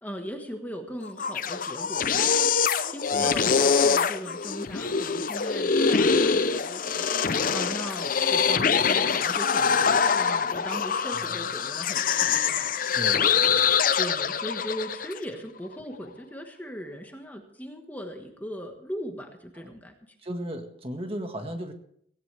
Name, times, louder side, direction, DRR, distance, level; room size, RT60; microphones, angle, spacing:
voice 1, 0.0-7.1 7.5-12.8 13.1-13.2 14.0-19.9, equal, 10° left, 4 dB, 1.4 m, -38 dB
sound 1, 1.0-15.2, left 6 dB, 45° left, 0.6 m, -24 dB
voice 2, 3.1-3.5 13.0-13.6 19.6-19.7 20.2-21.7, equal, 30° right, 5 dB, 1.7 m, -35 dB
17.5 x 17.5 x 3.4 m, 0.66 s
head